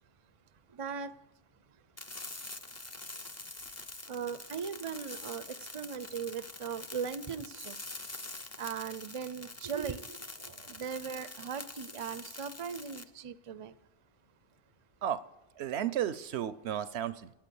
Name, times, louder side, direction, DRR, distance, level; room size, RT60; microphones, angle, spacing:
voice 1, 0.7-1.1 4.1-7.8 8.6-10.2 10.7-13.7, right 7 dB, 40° right, 14 dB, 0.6 m, -38 dB
sound 1, 2.0-13.0, left 2 dB, 20° left, 0.5 m, -45 dB
voice 2, 15.6-17.3, right 10 dB, 75° right, 16 dB, 0.9 m, -34 dB
16.5 x 8.8 x 7.1 m, 0.91 s
omnidirectional pair, 1.1 m